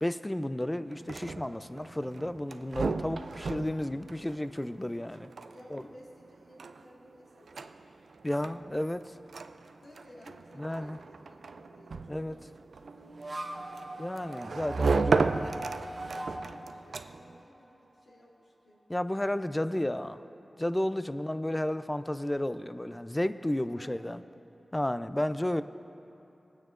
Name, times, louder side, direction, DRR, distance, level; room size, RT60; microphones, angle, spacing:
voice 1, 0.0-5.3 5.7-5.8 8.2-9.1 10.6-11.0 12.1-12.4 14.0-15.2 18.9-20.2 20.6-24.2 24.7-25.6, left 1 dB, 20° left, 12 dB, 0.4 m, -32 dB
sound 1, 0.9-17.4, right 4 dB, 85° right, 0.3 m, -35 dB
voice 2, 5.5-7.7 9.8-14.3 14.7-18.8 19.5-20.1 23.7-24.2, equal, 80° left, -5 dB, 2.0 m, -56 dB
sound 2, 12.8-18.0, right 1 dB, 60° right, 0.9 m, -42 dB
19.0 x 9.2 x 2.5 m, 2.9 s
cardioid pair, 40°, 0 cm